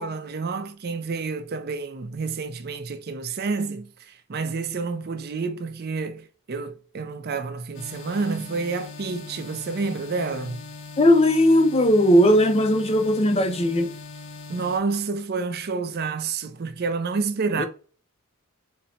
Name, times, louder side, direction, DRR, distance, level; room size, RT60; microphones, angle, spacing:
voice 1, 0.0-3.9 4.3-10.6 14.5-17.7, right 4 dB, 45° right, 0.5 m, -29 dB
sound 1, 7.7-14.8, left 4 dB, 60° left, 0.9 m, -41 dB
voice 2, 11.0-13.9 17.6-17.7, left 1 dB, 25° left, 0.5 m, -18 dB
4.1 x 2.1 x 4.1 m
head